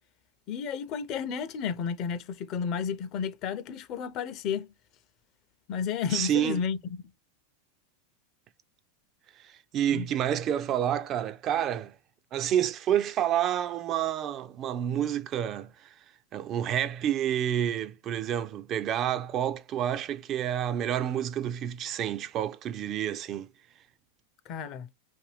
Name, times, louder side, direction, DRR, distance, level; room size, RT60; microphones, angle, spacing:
voice 1, 0.5-4.7 5.7-7.0 9.9-10.1 24.5-24.9, left 7 dB, 45° left, 0.5 m, -32 dB
voice 2, 6.1-6.6 9.4-11.9 12.3-15.9 16.3-23.5, right 10 dB, 40° right, 0.3 m, -29 dB
2.7 x 2.5 x 3.2 m
hypercardioid pair, 105°, 0 cm